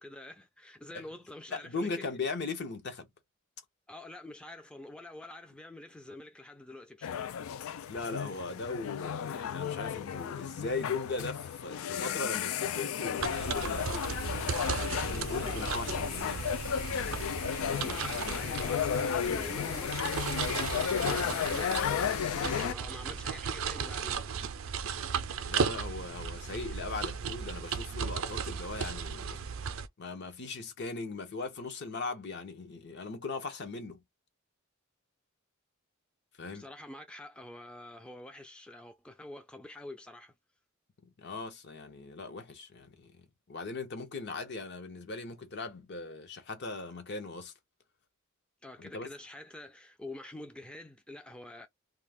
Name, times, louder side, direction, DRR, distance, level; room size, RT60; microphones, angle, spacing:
voice 1, 0.0-2.1 3.9-7.3 15.5-16.4 17.3-20.8 21.1-24.3 36.5-40.3 48.6-51.7, left 1 dB, 5° left, 0.4 m, -47 dB
voice 2, 1.5-3.1 7.9-14.2 14.9-16.4 21.0-21.3 25.5-29.4 30.0-34.0 36.4-36.7 41.0-47.5 48.8-49.1, left 3 dB, 55° left, 0.8 m, -39 dB
sound 1, 7.0-22.7, left 8 dB, 90° left, 0.3 m, -33 dB
sound 2, 13.2-29.9, right 6 dB, 75° right, 0.5 m, -36 dB
2.4 x 2.3 x 3.4 m
head